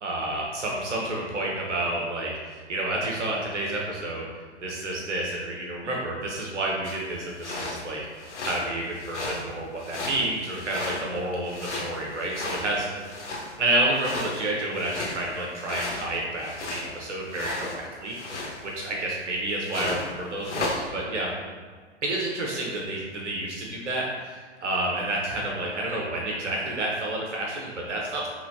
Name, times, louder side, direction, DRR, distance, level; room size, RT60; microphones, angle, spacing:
voice 1, 0.0-4.2 4.6-8.0 8.4-13.1 13.6-18.1 18.6-21.3 22.0-28.3, right 1 dB, 85° right, -2 dB, 0.8 m, -29 dB
sound 1, 6.8-7.0 7.3-7.8 8.2-8.7 8.9-9.5 9.8-11.2 11.4-13.6 13.9-16.9 17.3-17.8 18.1-18.9 19.6-20.1 20.4-20.8, left 2 dB, 90° left, 1.0 m, -34 dB
4.9 x 3.0 x 2.7 m, 1.5 s
hypercardioid pair, 110°, 35 cm